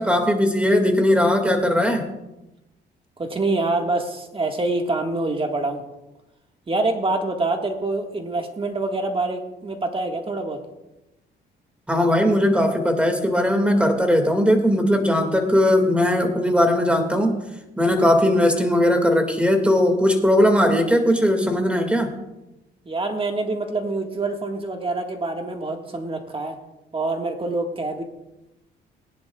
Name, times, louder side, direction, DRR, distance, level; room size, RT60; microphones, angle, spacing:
voice 1, 0.0-2.1 11.9-17.4 17.8-22.1, left 1 dB, 5° right, 5 dB, 2.0 m, -19 dB
voice 2, 3.2-5.8 6.7-10.6 22.8-26.6 26.9-28.0, right 2 dB, 25° right, 4 dB, 1.6 m, -26 dB
19.5 x 10.5 x 2.4 m, 0.96 s
cardioid pair, 90°, 20 cm